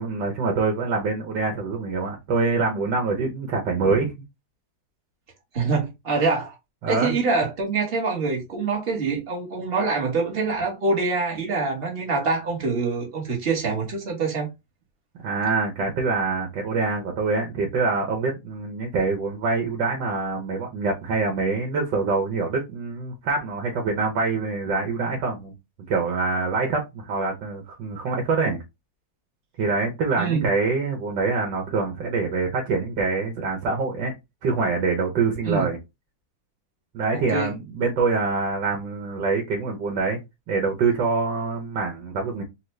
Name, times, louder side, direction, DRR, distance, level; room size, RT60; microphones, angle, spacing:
voice 1, 0.0-4.1 6.8-7.1 15.2-25.5 25.9-28.6 29.6-34.1 34.4-35.8 36.9-40.2 40.5-42.4, right 4 dB, 80° right, 1.5 m, -25 dB
voice 2, 5.5-6.5 6.9-14.5 30.2-30.5 35.4-35.7 37.1-37.5, right 4 dB, 35° right, 1.3 m, -25 dB
4.4 x 2.4 x 3.1 m
omnidirectional pair, 2.0 m